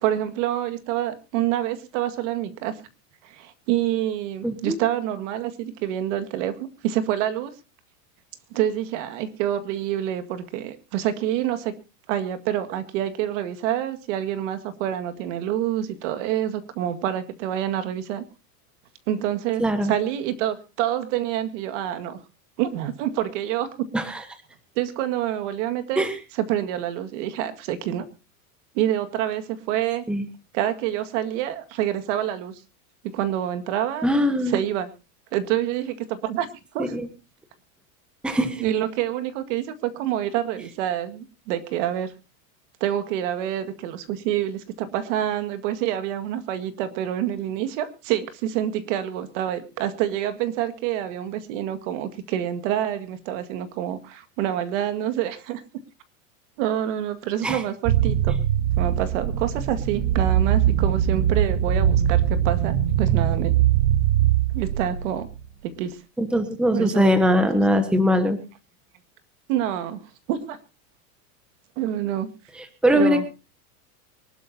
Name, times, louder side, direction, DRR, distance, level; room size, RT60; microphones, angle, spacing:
voice 1, 0.0-2.8 3.2-7.5 8.5-11.8 12.1-18.3 19.1-22.2 22.6-23.9 24.8-26.0 26.5-28.1 28.7-30.1 30.5-32.6 33.0-34.1 34.5-34.9 35.3-36.5 36.7-37.0 38.3-42.1 42.8-55.6 56.6-58.4 58.8-63.6 64.5-65.3 65.6-66.0 66.7-67.1 69.5-70.0 70.3-70.6 71.8-72.3 72.9-73.2, right 11 dB, 55° right, 10 dB, 2.0 m, -27 dB
voice 2, 4.4-4.8 19.6-19.9 23.9-24.2 26.0-26.1 30.1-30.2 34.0-34.6 36.8-37.1 38.2-38.6 57.4-57.6 66.2-68.4 72.5-73.3, equal, ahead, 8 dB, 1.3 m, -21 dB
sound 1, 57.8-65.4, right 10 dB, 35° right, 1.0 m, -21 dB
24.5 x 12.5 x 2.8 m, 0.29 s
supercardioid pair, 155°, 43 cm